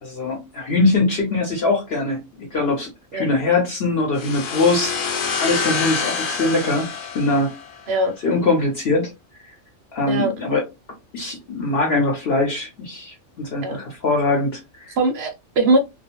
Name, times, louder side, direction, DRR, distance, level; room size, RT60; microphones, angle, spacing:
voice 1, 0.0-7.5 8.2-9.1 9.9-10.6 11.1-15.0, left 3 dB, 55° left, 0.9 m, -22 dB
sound 1, 4.2-7.9, left 5 dB, 80° left, 1.0 m, -26 dB
voice 2, 15.0-15.8, right 2 dB, 65° right, 0.7 m, -20 dB
2.3 x 2.0 x 2.8 m
omnidirectional pair, 1.3 m